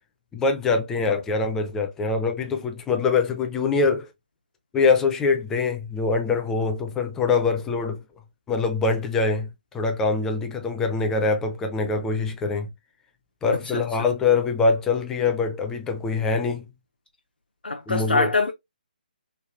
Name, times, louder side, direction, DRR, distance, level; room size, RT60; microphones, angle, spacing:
voice 1, 0.3-4.1 4.7-8.0 8.5-12.7 13.4-16.7 17.9-18.3, left 4 dB, 10° left, 0.4 m, -24 dB
voice 2, 17.6-18.5, left 3 dB, 85° left, 0.5 m, -23 dB
3.2 x 2.3 x 2.3 m
figure-of-eight pair, 145°, 5 cm